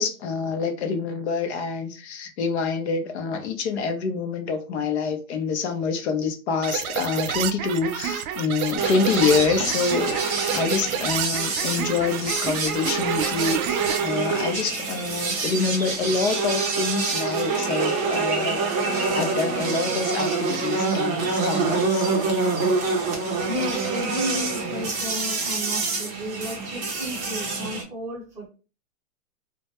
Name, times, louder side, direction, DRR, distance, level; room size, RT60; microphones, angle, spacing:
voice 1, 0.0-10.1 10.5-22.1, left 5 dB, 50° left, 0.6 m, -26 dB
sound 1, 6.6-14.1, right 9 dB, 75° right, 0.5 m, -29 dB
sound 2, 8.8-27.8, right 4 dB, 30° right, 0.6 m, -26 dB
voice 2, 23.4-28.5, left 1 dB, 5° right, 0.9 m, -33 dB
2.2 x 2.1 x 2.8 m
hypercardioid pair, 145°, 43 cm